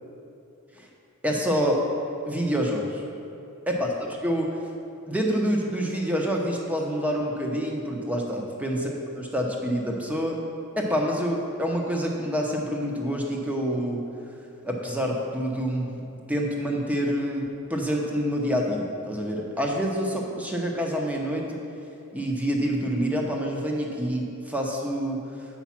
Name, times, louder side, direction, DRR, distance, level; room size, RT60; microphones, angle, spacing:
voice 1, 1.2-1.9 2.2-3.0 3.7-4.6 5.1-10.4 10.8-14.0 14.6-16.0 16.3-21.6 22.1-25.2, equal, 5° right, 0 dB, 0.8 m, -27 dB
7.2 x 5.2 x 5.8 m, 2.8 s
head